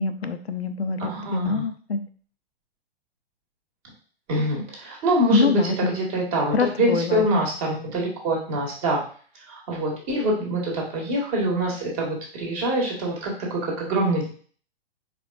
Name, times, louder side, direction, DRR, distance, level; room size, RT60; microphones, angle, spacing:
voice 1, 0.0-2.0 5.3-6.0 6.5-7.4, left 4 dB, 90° left, 9 dB, 0.5 m, -25 dB
voice 2, 1.1-1.6 4.3-9.0 9.5-14.3, right 1 dB, 35° right, -1 dB, 1.6 m, -25 dB
4.5 x 3.7 x 2.4 m, 0.44 s
figure-of-eight pair, 110°, 30 cm